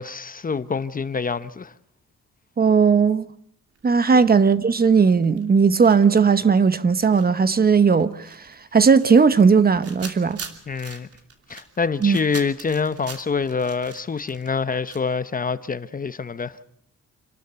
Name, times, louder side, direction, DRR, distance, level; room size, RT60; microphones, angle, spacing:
voice 1, 0.0-1.7 4.1-4.3 10.7-11.1 11.5-16.6, left 5 dB, 30° left, 0.9 m, -26 dB
voice 2, 2.6-3.3 3.8-8.5 8.7-10.4 12.0-12.2, right 5 dB, 30° right, 1.0 m, -17 dB
sound 1, 3.7-5.6 5.8-15.0, right 5 dB, 50° right, 2.9 m, -43 dB
27.5 x 12.5 x 8.1 m
cardioid pair, 90°, 30 cm